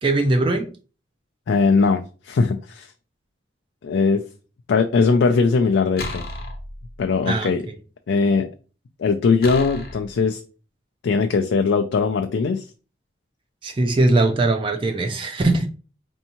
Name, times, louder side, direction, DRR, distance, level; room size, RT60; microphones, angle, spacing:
voice 1, 0.0-0.7 7.3-7.5 13.6-15.7, right 2 dB, 30° right, 0.4 m, -20 dB
voice 2, 1.5-2.9 3.8-4.2 4.7-6.2 7.0-7.6 8.1-8.5 9.0-10.4 11.0-12.6, left 4 dB, 90° left, 0.4 m, -20 dB
sound 1, 6.0-7.2 9.4-10.2, left 2 dB, 55° left, 0.7 m, -33 dB
4.4 x 2.7 x 2.8 m
head